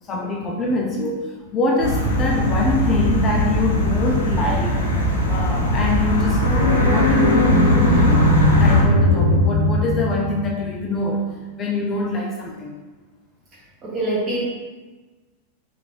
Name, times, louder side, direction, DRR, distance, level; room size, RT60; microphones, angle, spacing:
voice 1, 0.0-11.2 11.6-12.8, left 2 dB, 25° left, -1 dB, 0.4 m, -24 dB
sound 1, 1.8-8.8, equal, 70° left, 0.7 m, -21 dB
sound 2, 6.4-10.7, left 1 dB, 90° right, 0.5 m, -18 dB
voice 2, 13.8-14.4, right 2 dB, 30° right, -6 dB, 1.4 m, -24 dB
3.3 x 3.1 x 2.3 m, 1.3 s
figure-of-eight pair, 90°, 0 cm